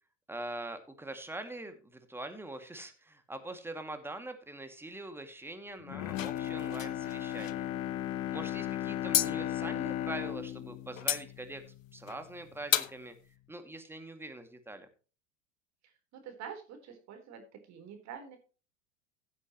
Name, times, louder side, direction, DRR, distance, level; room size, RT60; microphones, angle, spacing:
voice 1, 0.3-7.7 8.3-11.6 11.9-13.1 13.5-14.9, right 2 dB, 5° right, 7 dB, 2.3 m, -43 dB
Bowed string instrument, 5.8-12.1 12.5-12.6, left 12 dB, 45° left, 0.9 m, -36 dB
sound 1, 6.1-7.6 9.1-9.3 11.0-11.2 12.1-12.3 12.7-13.0, left 11 dB, 85° left, 0.9 m, -32 dB
voice 2, 15.8-18.4, right 7 dB, 45° right, 5 dB, 4.0 m, -47 dB
16.0 x 8.5 x 3.1 m, 0.35 s
hypercardioid pair, 90°, 38 cm